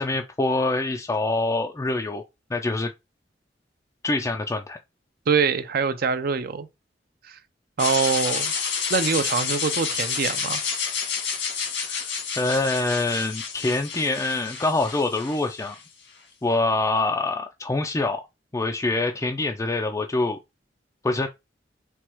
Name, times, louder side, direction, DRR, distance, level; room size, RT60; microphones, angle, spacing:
voice 1, 0.0-2.2 2.5-2.9 4.0-4.8 11.8-12.1 12.4-15.8 16.4-18.2 18.5-20.4 21.0-21.3, left 2 dB, 15° left, 0.3 m, -25 dB
voice 2, 5.3-6.7 7.3-7.4 7.8-8.5 8.9-10.6, right 5 dB, 55° right, 0.5 m, -24 dB
sound 1, 7.8-15.8, left 6 dB, 85° left, 1.7 m, -29 dB
4.4 x 2.3 x 4.4 m
head